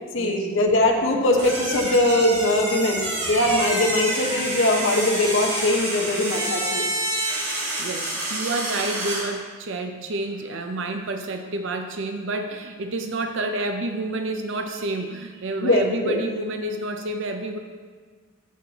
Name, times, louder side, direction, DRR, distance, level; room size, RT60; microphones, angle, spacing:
voice 1, 0.1-6.9 15.6-16.2, left 1 dB, 65° left, 1 dB, 1.0 m, -21 dB
sound 1, 1.3-9.3, right 1 dB, 30° right, 1.9 m, -28 dB
voice 2, 7.8-17.6, right 2 dB, 60° right, 4 dB, 0.5 m, -29 dB
14.5 x 5.5 x 2.9 m, 1.6 s
head